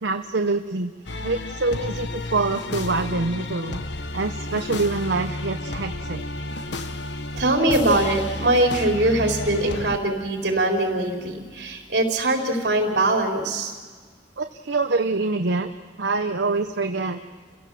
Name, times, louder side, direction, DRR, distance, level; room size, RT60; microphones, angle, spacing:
voice 1, 0.0-0.9 1.2-3.8 4.1-6.2 14.4-15.7 16.0-17.2, right 3 dB, 85° right, 6 dB, 0.9 m, -25 dB
sound 1, 1.1-10.0, left 2 dB, 80° left, 1.4 m, -32 dB
voice 2, 7.3-13.7, right 1 dB, 65° right, 2 dB, 4.1 m, -22 dB
29.5 x 17.0 x 7.7 m, 1.5 s
head